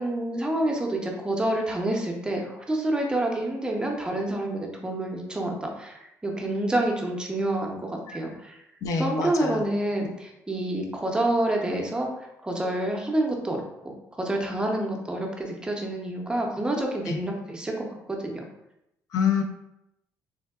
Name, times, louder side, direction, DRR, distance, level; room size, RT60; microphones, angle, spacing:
voice 1, 0.0-8.6 9.0-13.6 14.1-18.4, right 1 dB, 15° right, 1 dB, 0.5 m, -28 dB
voice 2, 8.8-9.6 17.1-17.2 19.1-19.4, left 6 dB, 60° left, 4 dB, 0.3 m, -26 dB
3.4 x 2.2 x 2.2 m, 0.82 s
cardioid pair, 105°, 6 cm